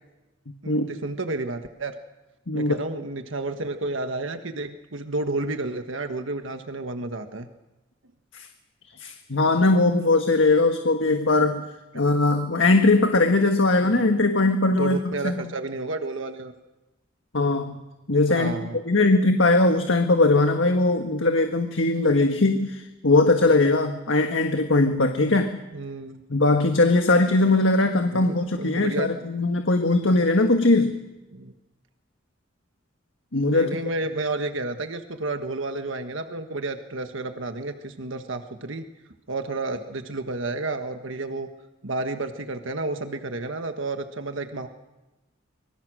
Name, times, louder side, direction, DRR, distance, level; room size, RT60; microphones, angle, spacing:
voice 1, 0.6-1.9 2.5-7.5 11.9-12.0 13.8-14.2 14.8-16.5 18.3-18.8 25.7-26.2 28.1-29.3 31.3-31.5 33.5-38.9 39.3-41.5 41.8-44.7, right 2 dB, 80° right, 7 dB, 1.5 m, -31 dB
voice 2, 2.5-2.8 8.3-8.5 9.0-11.6 11.9-15.0 15.2-15.3 17.3-18.5 18.9-25.6 26.3-31.0 33.3-33.7, left 2 dB, 80° left, 5 dB, 1.5 m, -20 dB
25.5 x 23.0 x 6.4 m, 1.0 s
head